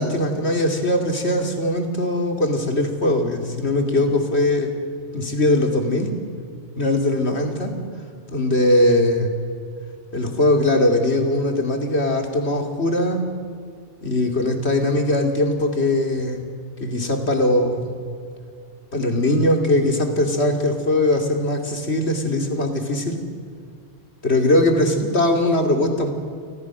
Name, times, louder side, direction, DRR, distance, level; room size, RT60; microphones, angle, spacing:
voice 1, 0.0-4.7 5.1-6.1 6.8-7.7 8.3-9.3 10.1-13.2 14.0-16.4 16.8-17.9 18.9-23.2 24.2-26.1, left 1 dB, 60° left, 4 dB, 3.0 m, -20 dB
29.5 x 20.0 x 6.2 m, 2.3 s
omnidirectional pair, 1.2 m